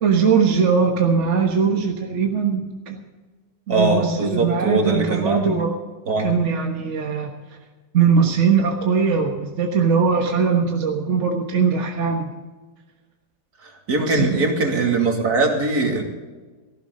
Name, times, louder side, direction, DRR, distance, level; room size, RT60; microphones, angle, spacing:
voice 1, 0.0-3.0 3.7-5.7 6.2-7.3 7.9-12.3 13.9-14.3, right 6 dB, 45° right, 2 dB, 1.5 m, -20 dB
voice 2, 3.7-5.6 6.1-6.3 13.6-16.0, right 3 dB, 60° right, 1 dB, 3.1 m, -21 dB
17.0 x 14.5 x 3.8 m, 1.3 s
omnidirectional pair, 1.8 m